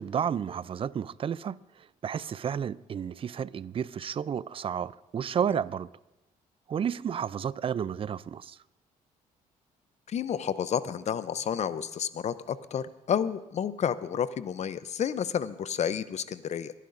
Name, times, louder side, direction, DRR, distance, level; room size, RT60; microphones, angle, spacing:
voice 1, 0.0-1.6 2.0-5.9 6.7-8.6, right 8 dB, 40° right, 0.4 m, -31 dB
voice 2, 10.1-16.7, left 8 dB, 50° left, 0.6 m, -30 dB
25.0 x 11.0 x 2.6 m
cardioid pair, 80°, 15 cm